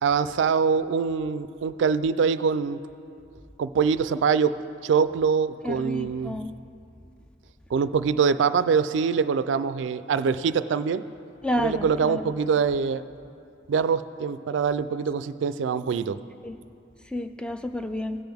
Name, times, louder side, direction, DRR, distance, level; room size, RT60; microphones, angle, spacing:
voice 1, 0.0-2.8 3.6-4.5 4.8-6.4 7.7-11.0 11.6-13.0 13.7-16.2, right 6 dB, 85° right, 13 dB, 0.3 m, -24 dB
voice 2, 5.6-6.5 11.4-12.4 16.4-16.6 17.1-18.2, left 1 dB, 5° left, 8 dB, 0.3 m, -30 dB
16.5 x 7.9 x 3.5 m, 2.5 s
head